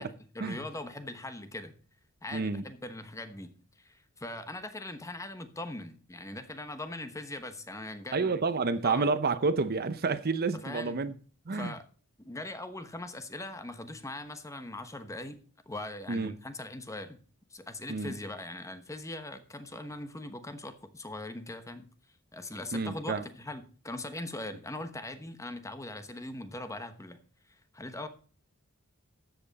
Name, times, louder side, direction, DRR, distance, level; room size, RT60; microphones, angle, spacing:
voice 1, 0.0-1.7 2.2-3.5 3.8-8.3 8.8-9.1 10.6-10.9 11.5-11.8 12.2-15.4 15.7-17.2 17.5-21.9 22.3-27.2 27.7-28.1, left 2 dB, 15° left, 1.1 m, -41 dB
voice 2, 2.3-2.6 8.1-11.1 11.5-11.7 16.1-16.3 17.9-18.2 22.7-23.2, right 4 dB, 45° right, 0.7 m, -29 dB
13.5 x 8.0 x 4.1 m
head